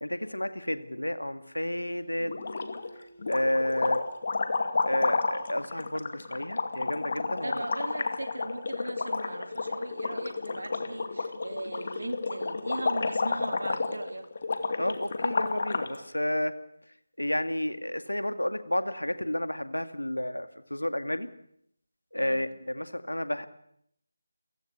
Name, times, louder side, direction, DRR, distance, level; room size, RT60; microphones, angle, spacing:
voice 1, 0.0-2.4 3.3-4.1 4.9-7.6 14.8-16.5 17.2-21.3 22.1-23.5, left 1 dB, 80° left, 10 dB, 2.1 m, -31 dB
Acoustic guitar, 1.8-5.3, right 1 dB, 15° right, 6.2 m, -53 dB
voice 2, 2.2-2.6 3.5-3.9 7.4-14.3 22.2-22.5, right 1 dB, 65° right, 9 dB, 2.5 m, -39 dB
sound 1, 2.3-2.9 3.2-16.0, left 3 dB, 40° left, 2.3 m, -31 dB
29.5 x 16.0 x 8.2 m, 0.72 s
figure-of-eight pair, 160°, 0 cm